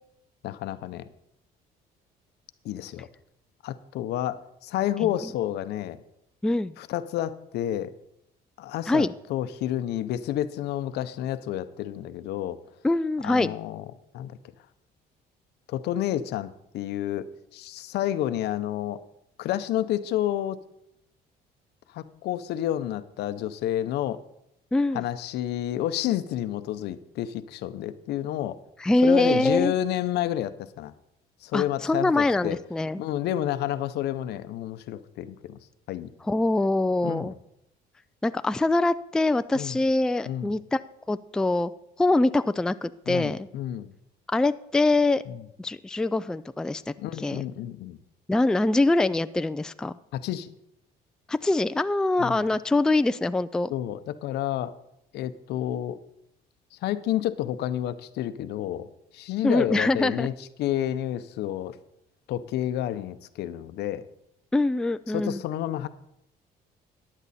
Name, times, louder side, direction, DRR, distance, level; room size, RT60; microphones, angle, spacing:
voice 1, 0.4-1.0 2.6-3.1 3.6-6.0 6.8-7.9 8.6-12.6 13.2-13.8 14.1-14.4 15.7-19.0 19.4-20.6 21.9-24.2 24.9-28.6 29.0-30.9 31.4-32.6 33.0-35.6 35.9-36.1 37.0-37.3 39.5-39.8 40.3-40.5 43.1-43.9 45.3-45.4 47.0-48.0 50.1-50.5 52.2-52.4 53.7-54.7 55.1-56.0 56.8-58.9 59.1-60.3 60.6-61.8 62.3-64.1 65.1-65.9, left 12 dB, 75° left, 13 dB, 0.8 m, -30 dB
voice 2, 6.4-6.7 8.9-9.1 12.8-13.5 24.7-25.0 28.8-29.7 31.5-33.0 36.2-37.3 38.2-40.8 41.1-41.7 42.0-43.5 44.3-45.2 45.6-47.4 48.3-49.9 51.3-53.7 59.4-60.3 64.5-65.4, left 2 dB, 5° left, 12 dB, 0.3 m, -24 dB
15.0 x 10.0 x 4.2 m, 0.81 s
cardioid pair, 110°, 17 cm